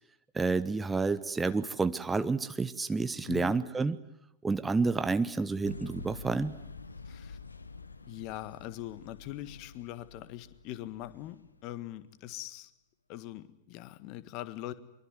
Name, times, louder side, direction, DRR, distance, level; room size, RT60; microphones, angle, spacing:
voice 1, 0.3-4.0 4.4-6.6, right 4 dB, 10° right, 12 dB, 1.0 m, -29 dB
voice 2, 3.2-3.5 7.0-7.4 8.1-12.7 13.1-14.7, left 14 dB, 40° left, 15 dB, 1.6 m, -42 dB
sound 1, 5.6-11.7 12.2-12.3, left 4 dB, 80° left, 1.2 m, -48 dB
24.5 x 23.5 x 9.7 m, 0.82 s
figure-of-eight pair, 90°, 0 cm